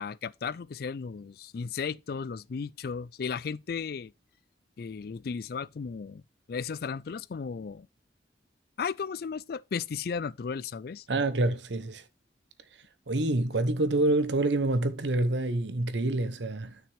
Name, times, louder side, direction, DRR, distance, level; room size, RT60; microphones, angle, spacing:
voice 1, 0.0-4.1 4.8-6.2 6.5-7.9 8.8-11.1, left 5 dB, 55° left, 0.4 m, -35 dB
voice 2, 11.1-12.0 13.1-16.8, right 2 dB, 75° right, 0.9 m, -27 dB
9.7 x 6.1 x 3.4 m
head